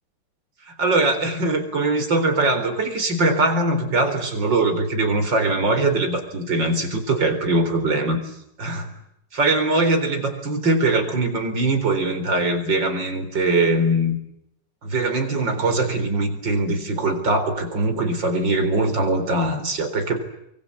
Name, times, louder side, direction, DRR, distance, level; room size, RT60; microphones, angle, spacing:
voice 1, 0.7-8.9 9.3-14.2 14.8-20.2, right 2 dB, 90° right, 7 dB, 4.8 m, -22 dB
29.0 x 24.0 x 8.5 m, 0.80 s
omnidirectional pair, 1.9 m